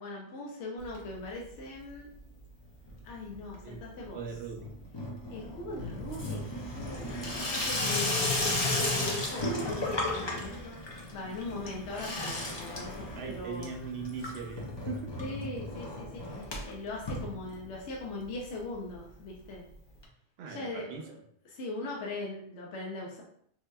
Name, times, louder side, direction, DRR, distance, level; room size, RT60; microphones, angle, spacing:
voice 1, 0.0-2.1 3.0-4.2 5.3-6.4 6.7-10.8 11.1-13.7 15.2-19.7 20.5-21.2 21.5-23.2, left 2 dB, 75° left, -2 dB, 0.9 m, -40 dB
Water tap faucet / Sink (filling or washing), 0.8-1.6 1.8-2.4 2.7-18.0 18.3-18.4 18.6-18.7 18.9-19.0 20.0-20.1, left 2 dB, 30° left, 0.5 m, -35 dB
voice 2, 3.6-4.8 13.2-15.1 20.4-21.1, right 5 dB, 65° right, 3 dB, 0.8 m, -40 dB
4.5 x 2.8 x 2.2 m, 0.67 s
omnidirectional pair, 1.2 m